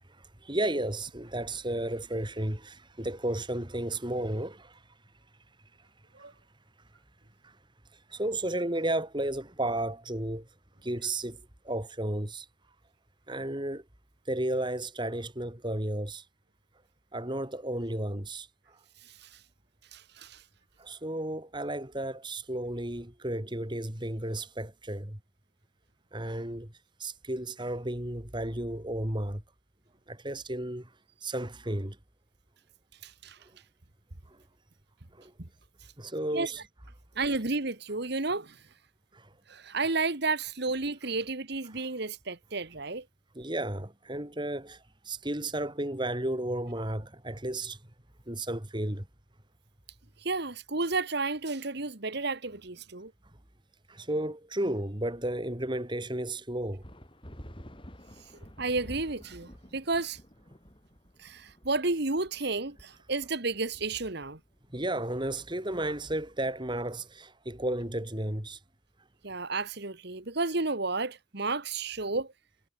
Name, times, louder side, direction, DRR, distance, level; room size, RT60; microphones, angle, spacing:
voice 1, 0.1-4.8 6.2-6.3 7.4-7.6 8.1-10.5 10.8-12.5 13.3-13.8 14.3-16.2 17.1-18.8 20.8-25.2 26.1-26.7 27.0-29.4 30.1-30.9 31.2-32.0 33.4-33.5 34.3-34.4 35.1-35.3 36.0-36.6 39.1-39.3 41.7-41.8 43.3-47.8 48.3-49.1 53.9-56.8 64.7-68.6, right 1 dB, 20° right, 2.4 m, -33 dB
voice 2, 19.0-19.4 19.9-20.4 33.0-33.4 35.4-35.5 36.3-36.5 37.1-38.6 39.5-43.0 50.2-53.1 58.6-60.2 61.2-64.4 69.2-72.3, right 3 dB, 55° right, 1.7 m, -32 dB
sound 1, 56.8-66.8, equal, 25° left, 6.3 m, -51 dB
head